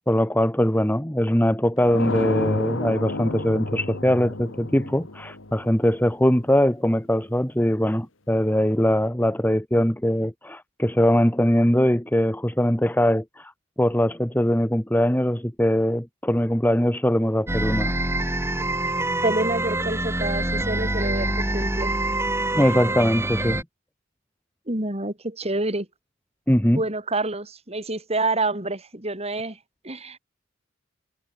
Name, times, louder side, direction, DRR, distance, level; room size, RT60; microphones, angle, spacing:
voice 1, 0.1-13.5 13.8-17.9 22.5-23.6 26.5-26.8, equal, 10° left, 1.6 m, -21 dB
sound 1, 1.8-6.5, left 2 dB, 80° left, 2.5 m, -31 dB
sound 2, 17.5-23.6, right 1 dB, 15° right, 2.7 m, -25 dB
voice 2, 19.2-21.9 24.7-25.9 26.7-29.6 29.8-30.2, right 2 dB, 30° right, 5.1 m, -27 dB
head